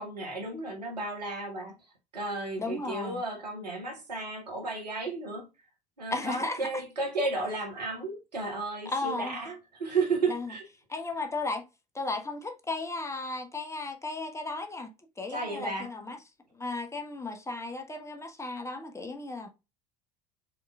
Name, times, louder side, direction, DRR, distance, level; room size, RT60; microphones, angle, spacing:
voice 1, 0.0-1.7 2.1-5.5 6.0-10.6 15.3-15.9, right 3 dB, 80° right, 1.2 m, -33 dB
voice 2, 2.6-3.2 6.1-6.7 8.8-9.4 10.3-10.5 10.9-11.6 11.9-16.2 16.5-19.5, left 3 dB, 15° left, 0.9 m, -35 dB
4.6 x 3.7 x 2.3 m
figure-of-eight pair, 65°, 21 cm